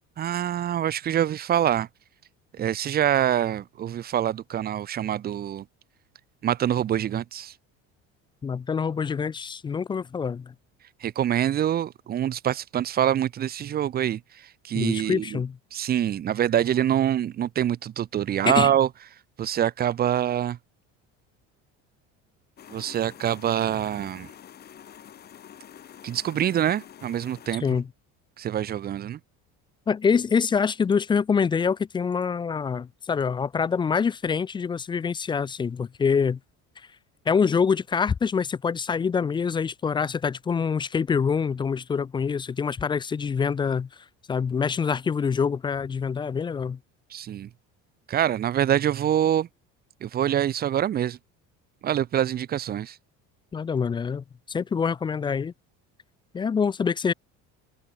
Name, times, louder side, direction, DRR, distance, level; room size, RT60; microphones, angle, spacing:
voice 1, 0.2-1.9 2.6-5.6 6.4-7.5 11.0-14.2 14.6-15.4 15.7-18.9 19.4-20.6 22.7-24.3 26.0-27.6 28.4-29.2 47.1-47.5 48.1-49.5 50.0-51.2 51.8-53.0, right 10 dB, 30° right, 0.7 m, -25 dB
voice 2, 8.4-10.5 14.7-15.6 18.4-18.7 27.6-27.9 29.9-36.4 37.3-43.9 44.3-46.8 53.5-55.5 56.3-57.1, left 6 dB, 15° left, 0.4 m, -25 dB
sound 1, 22.6-27.6, left 9 dB, 30° left, 1.4 m, -47 dB
cardioid pair, 145°, 30 cm